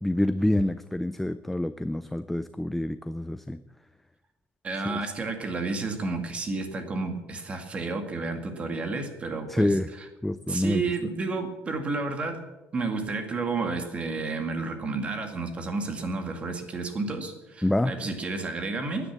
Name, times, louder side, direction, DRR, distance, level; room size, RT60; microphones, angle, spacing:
voice 1, 0.0-3.6 4.9-5.0 9.5-9.9 10.2-10.8 17.6-17.9, left 1 dB, 5° left, 12 dB, 0.4 m, -27 dB
voice 2, 4.6-10.1 10.5-12.4 12.7-19.1, right 3 dB, 25° right, 6 dB, 2.0 m, -31 dB
14.5 x 10.0 x 7.5 m, 1.1 s
cardioid pair, 170°, 5 cm